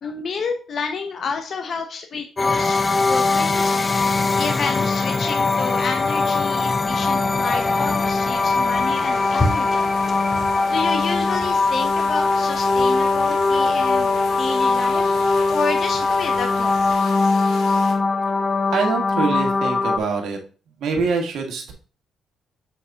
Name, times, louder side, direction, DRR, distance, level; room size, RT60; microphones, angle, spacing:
voice 1, 0.0-3.7 4.4-9.7 10.7-14.1 14.4-15.0 15.5-16.8, left 5 dB, 55° left, 4 dB, 0.9 m, -29 dB
sound 1, 2.4-20.0, left 3 dB, 25° left, 0.5 m, -21 dB
sound 2, 2.9-17.9, left 4 dB, 90° left, 1.5 m, -39 dB
sound 3, 6.9-16.9, left 1 dB, 10° left, 2.2 m, -34 dB
voice 2, 18.7-20.4 20.8-21.7, right 4 dB, 75° right, 2 dB, 1.7 m, -24 dB
7.0 x 4.1 x 3.6 m, 0.37 s
cardioid pair, 90°, 0 cm